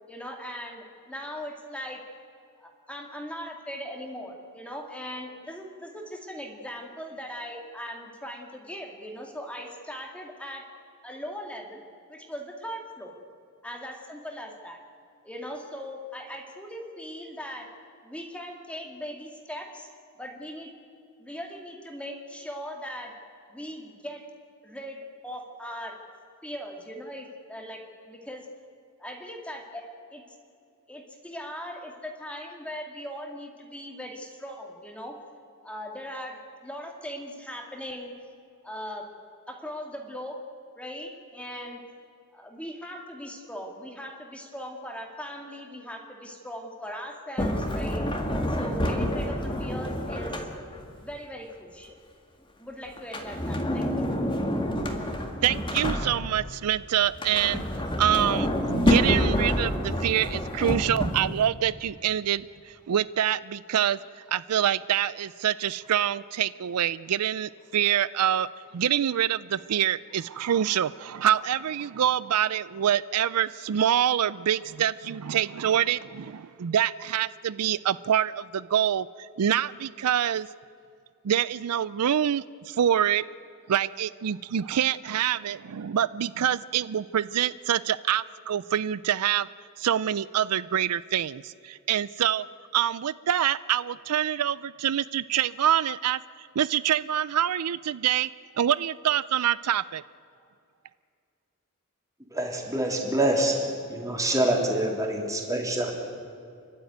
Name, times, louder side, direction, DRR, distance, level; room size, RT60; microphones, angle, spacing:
voice 1, 0.1-2.0 2.6-10.6 11.0-11.8 12.1-13.2 13.6-14.8 15.2-17.7 18.0-19.9 20.2-20.7 21.2-23.1 23.5-24.2 24.6-26.0 26.4-28.5 29.0-29.8 30.1-30.2 30.9-35.2 35.6-38.1 38.6-39.1 39.5-40.4 40.8-41.8 42.3-48.0 48.6-50.4 50.8-52.0 52.6-54.1, equal, 5° left, 2 dB, 2.3 m, -39 dB
Sliding door, 47.4-50.9 53.0-56.5 57.1-61.4, equal, 20° left, 1.9 m, -28 dB
voice 2, 55.4-57.6 58.0-64.0 64.3-68.5 68.7-80.5 81.2-83.2 83.7-89.5 89.8-92.5 92.7-96.2 96.6-98.3 98.6-100.0, right 10 dB, 85° right, 18 dB, 0.4 m, -26 dB
voice 3, 102.3-103.6 103.9-106.1, right 1 dB, 15° right, 0 dB, 3.6 m, -26 dB
30.0 x 12.0 x 9.3 m, 2.5 s
head